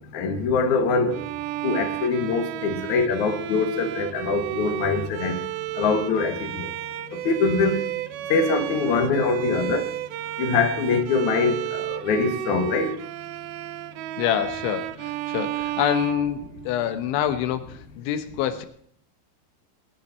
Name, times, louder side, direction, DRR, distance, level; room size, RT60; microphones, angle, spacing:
voice 1, 0.1-1.2 1.6-5.4 5.8-6.7 7.2-7.8 8.3-9.9 10.4-12.9, left 4 dB, 55° left, 5 dB, 2.3 m, -23 dB
Bowed string instrument, 1.1-17.0, right 14 dB, 85° right, 2.1 m, -32 dB
voice 2, 14.2-18.7, left 10 dB, 85° left, 9 dB, 3.5 m, -26 dB
21.5 x 10.0 x 4.3 m, 0.63 s
omnidirectional pair, 5.3 m